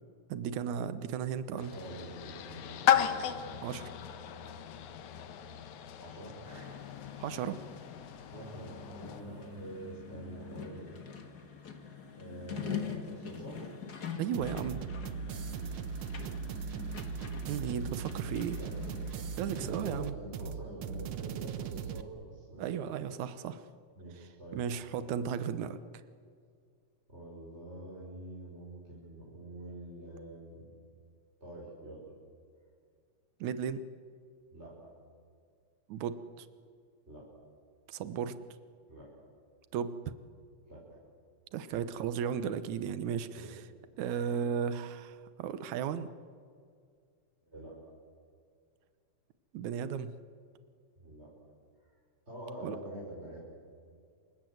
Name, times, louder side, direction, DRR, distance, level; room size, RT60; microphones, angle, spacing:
voice 1, 0.3-1.7 3.6-3.9 7.2-7.6 14.2-14.8 17.5-18.6 19.4-20.1 22.6-23.6 24.5-25.8 33.4-33.9 35.9-36.5 37.9-38.4 39.7-40.0 41.5-43.4 44.0-46.1 49.5-50.1 52.6-52.8, right 8 dB, 85° right, 12 dB, 2.4 m, -35 dB
sound 1, 1.6-9.2, left 10 dB, 80° left, 2.6 m, -35 dB
voice 2, 1.7-3.7 6.0-6.8 8.3-11.0 12.1-13.7 15.4-15.7 18.2-22.7 24.0-24.7 27.1-30.7 31.4-32.1 34.5-34.9 37.1-37.4 38.9-39.2 40.7-41.0 41.6-41.8 43.3-43.5 44.0-44.4 47.4-47.9 50.9-51.3 51.8-51.9 52.3-53.4, right 1 dB, 20° right, -5 dB, 5.6 m, -46 dB
sound 2, 6.4-19.8, left 6 dB, 35° left, 2.2 m, -44 dB
sound 3, 14.3-22.0, right 6 dB, 60° right, 1.6 m, -39 dB
27.5 x 25.0 x 7.9 m, 2.2 s
omnidirectional pair, 3.3 m